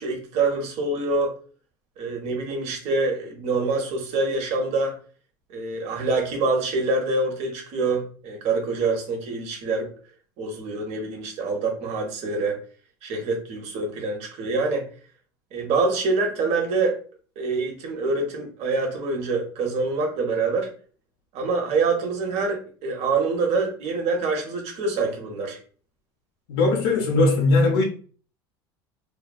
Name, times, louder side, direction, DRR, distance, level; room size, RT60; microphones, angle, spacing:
voice 1, 0.0-1.3 2.0-5.0 5.5-9.9 10.4-12.6 13.0-14.9 15.5-17.0 17.4-20.7 21.3-25.6, right 3 dB, 55° right, 0.9 m, -25 dB
voice 2, 26.5-27.8, left 2 dB, 75° left, 0.7 m, -19 dB
2.5 x 2.3 x 2.3 m
hypercardioid pair, 90°, 13 cm